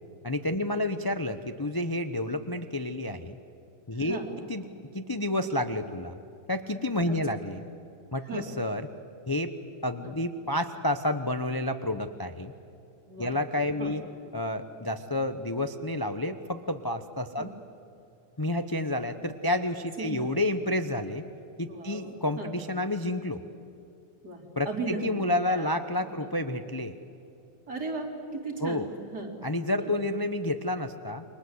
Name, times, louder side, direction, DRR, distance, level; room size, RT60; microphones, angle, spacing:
voice 1, 0.2-3.4 3.9-4.2 4.5-4.6 4.9-6.2 6.5-7.6 8.1-8.9 9.3-9.5 9.8-12.5 13.2-14.0 14.3-17.5 18.4-21.2 21.6-23.4 24.6-26.9 28.6-28.9 29.4-31.2, left 1 dB, 25° left, 8 dB, 0.4 m, -30 dB
voice 2, 3.9-4.4 7.1-7.2 8.2-8.5 10.0-10.1 13.1-13.4 13.8-14.0 17.4-17.5 20.0-20.3 21.7-22.5 24.2-25.8 26.2-26.3 27.7-29.4 29.8-30.0, right 3 dB, 60° right, 1 dB, 3.9 m, -37 dB
29.0 x 24.0 x 8.0 m, 2.8 s
omnidirectional pair, 2.0 m